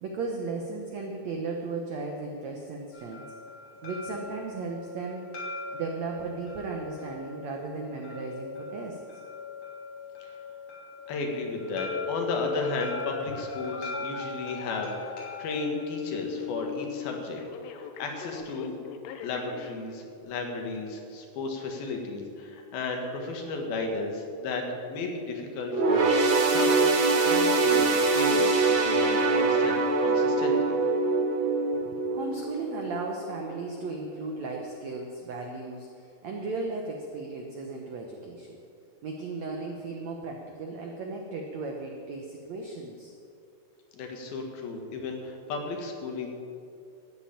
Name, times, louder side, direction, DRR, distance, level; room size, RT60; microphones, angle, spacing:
voice 1, 0.0-3.2 3.8-5.2 5.7-9.0 31.7-38.6 39.0-43.1 44.9-45.0, right 3 dB, 85° right, 2 dB, 1.5 m, -36 dB
sound 1, 2.9-16.8, left 2 dB, 45° left, 4.0 m, -41 dB
voice 2, 11.1-17.4 17.7-18.8 19.2-30.8 43.9-46.3, left 3 dB, 65° left, 2 dB, 3.2 m, -34 dB
Telephone, 11.8-19.8 20.3-20.4, left 8 dB, 90° left, 3.0 m, -38 dB
sound 2, 25.7-33.4 33.8-34.0 34.9-35.0, right 3 dB, 55° right, 1.3 m, -24 dB
13.0 x 8.8 x 8.7 m, 2.5 s
omnidirectional pair, 4.8 m